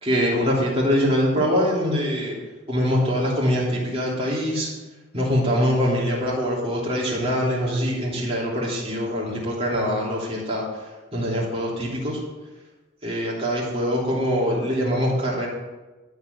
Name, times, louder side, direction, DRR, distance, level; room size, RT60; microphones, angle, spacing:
voice 1, 0.0-2.3 2.7-4.7 5.1-10.7 11.1-12.2 13.0-15.5, equal, 30° right, -5 dB, 3.2 m, -23 dB
13.0 x 4.9 x 8.1 m, 1.2 s
head